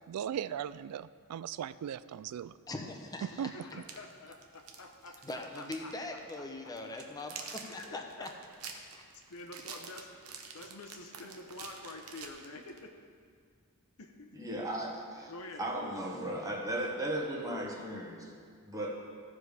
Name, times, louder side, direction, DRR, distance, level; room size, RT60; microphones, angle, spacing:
voice 1, 0.1-2.5 3.4-3.8, right 9 dB, 90° right, 17 dB, 0.3 m, -38 dB
voice 2, 2.7-3.5 5.2-8.3 8.9-9.0, left 2 dB, 15° left, 3 dB, 0.8 m, -41 dB
voice 3, 3.5-6.4 7.7-8.3 9.3-10.1 10.5-12.9 14.0-14.4 15.3-16.0, left 2 dB, 75° left, 3 dB, 0.9 m, -48 dB
sound 1, 3.7-5.9 6.2-6.4 6.8-12.8, right 6 dB, 70° right, 0.9 m, -47 dB
voice 4, 14.3-15.3 15.6-19.0, right 1 dB, 15° right, -1 dB, 1.2 m, -36 dB
14.5 x 4.9 x 4.9 m, 2.1 s
head